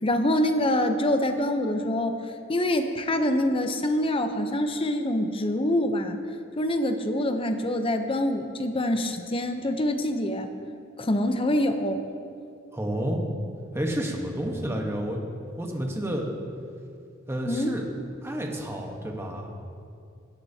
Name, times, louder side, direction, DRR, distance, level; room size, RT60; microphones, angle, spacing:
voice 1, 0.0-2.2 2.5-6.2 6.6-10.5 11.0-12.0 17.5-17.7, left 1 dB, 25° left, 7 dB, 0.7 m, -25 dB
voice 2, 12.7-13.2 13.7-15.2 15.6-16.3 17.3-17.8 18.2-19.5, equal, 15° right, 1 dB, 1.1 m, -30 dB
16.5 x 10.5 x 2.8 m, 2.4 s
head